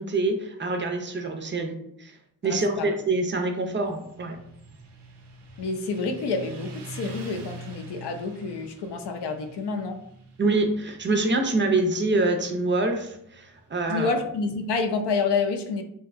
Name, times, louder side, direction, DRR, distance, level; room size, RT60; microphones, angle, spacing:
voice 1, 0.0-2.1 2.4-4.4 10.4-14.2, right 2 dB, 30° right, 5 dB, 0.4 m, -25 dB
voice 2, 2.4-2.9 5.6-10.0 13.9-15.8, left 4 dB, 70° left, 5 dB, 0.5 m, -28 dB
Motorcycle, 3.6-14.8, right 3 dB, 80° right, 0.6 m, -45 dB
2.7 x 2.2 x 2.4 m, 0.72 s
cardioid pair, 60°, 41 cm